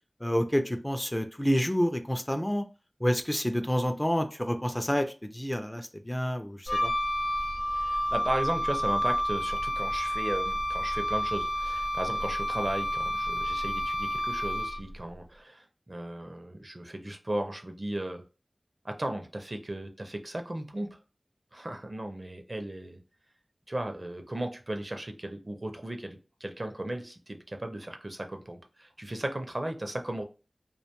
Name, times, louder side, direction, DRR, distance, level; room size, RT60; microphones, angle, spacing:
voice 1, 0.2-2.6 3.0-6.9, equal, 15° left, 0.3 m, -28 dB
Wind instrument woodwind instrument, 6.7-15.0, equal, 85° left, 0.5 m, -30 dB
voice 2, 7.7-18.2 18.8-21.0 21.5-23.0 23.7-30.2, right 1 dB, 45° right, 0.4 m, -36 dB
2.4 x 2.2 x 2.9 m
wide cardioid pair, 45°, 0 cm